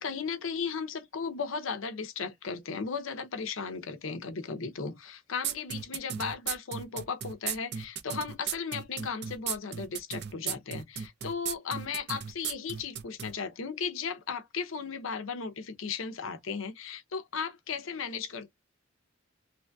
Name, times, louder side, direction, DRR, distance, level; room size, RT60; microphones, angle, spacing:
voice 1, 0.0-18.5, left 5 dB, 80° left, 0.6 m, -36 dB
sound 1, 5.4-13.3, right 8 dB, 50° right, 0.5 m, -35 dB
3.1 x 2.6 x 2.2 m
head